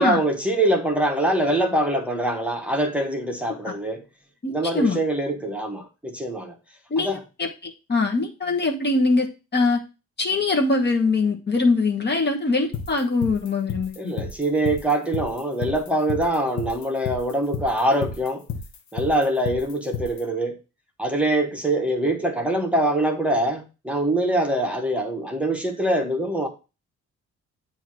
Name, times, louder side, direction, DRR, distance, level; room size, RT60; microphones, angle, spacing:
voice 1, 0.0-4.0 4.5-6.5 7.0-7.2 14.0-18.4 18.9-20.5 21.0-26.5, right 1 dB, 5° right, 1 dB, 1.2 m, -24 dB
voice 2, 4.4-5.0 6.9-9.8 10.2-14.1, left 3 dB, 35° left, 2 dB, 1.3 m, -23 dB
sound 1, 12.7-20.2, left 6 dB, 65° left, 1.0 m, -31 dB
7.8 x 2.8 x 6.0 m, 0.30 s
cardioid pair, 90°, 30 cm